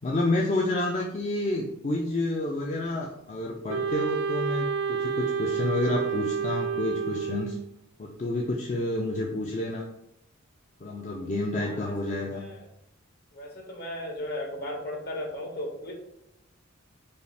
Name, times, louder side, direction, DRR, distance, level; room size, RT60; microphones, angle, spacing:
voice 1, 0.0-7.6 8.0-9.8 10.8-12.4, left 2 dB, 35° left, -1 dB, 0.4 m, -29 dB
Wind instrument woodwind instrument, 3.7-7.7, right 6 dB, 60° right, 0.3 m, -29 dB
voice 2, 11.6-12.6 13.3-15.9, left 1 dB, 55° left, 0 dB, 1.1 m, -36 dB
5.4 x 2.3 x 3.3 m, 0.78 s
head